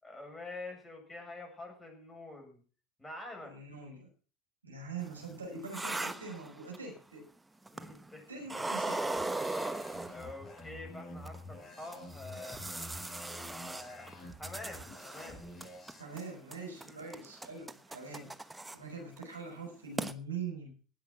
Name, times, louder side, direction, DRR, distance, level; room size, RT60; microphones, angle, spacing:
voice 1, 0.0-2.6 3.0-3.5 7.7-8.3 10.1-12.6 13.5-14.1 14.4-15.4 16.8-17.0, left 2 dB, 10° left, 1 dB, 7.7 m, -46 dB
voice 2, 3.4-4.1 4.6-7.3 8.3-9.2 16.0-18.3 18.7-20.7, right 4 dB, 90° right, 0 dB, 5.6 m, -43 dB
sound 1, 5.1-7.0 7.7-8.1 8.5-10.6 11.2-11.4 11.9-15.3 15.6-16.2 16.5-18.8 19.2-19.3 19.7-19.8 20.0-20.1, right 2 dB, 10° right, 1.1 m, -39 dB
sound 2, 9.2-16.0, left 1 dB, 30° left, 7.5 m, -48 dB
18.5 x 8.2 x 6.1 m, 0.40 s
figure-of-eight pair, 70°, 0 cm